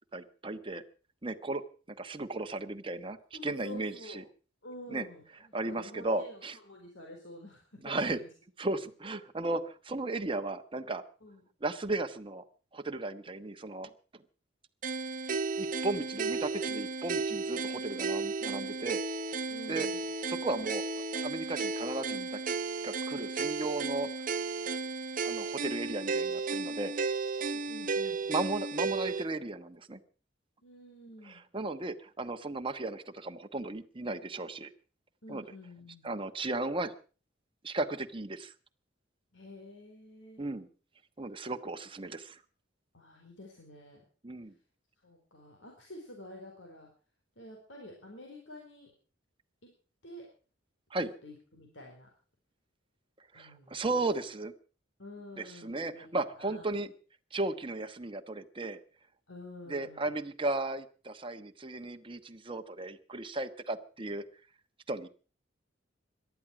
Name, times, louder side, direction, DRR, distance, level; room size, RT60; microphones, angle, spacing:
voice 1, 0.1-0.8 1.2-1.6 1.9-3.2 3.4-4.2 4.9-5.1 5.5-6.6 7.8-8.2 8.6-11.0 11.6-12.4 12.7-13.9 15.6-19.0 19.7-19.9 20.3-20.8 21.2-22.4 22.8-24.1 25.2-26.9 28.3-30.0 31.2-34.7 35.3-35.4 36.0-36.9 37.6-38.5 40.4-40.7 41.2-42.4 44.2-44.5 50.9-51.1 53.3-54.5 55.4-56.9 57.3-58.8 59.7-64.2 64.9-65.1, right 2 dB, 30° right, 8 dB, 1.2 m, -35 dB
voice 2, 3.3-4.2 4.6-8.3 11.2-11.4 19.5-20.1 27.4-28.2 30.6-31.4 35.2-36.1 39.3-40.4 42.9-44.0 45.0-46.9 47.4-48.9 49.6-49.7 50.0-50.3 51.2-52.1 53.3-54.3 55.0-56.6 59.3-60.1, left 1 dB, 70° left, 0 dB, 4.2 m, -49 dB
sound 1, 14.8-29.3, right 4 dB, 45° right, 0.8 m, -34 dB
18.0 x 12.5 x 6.0 m, 0.38 s
head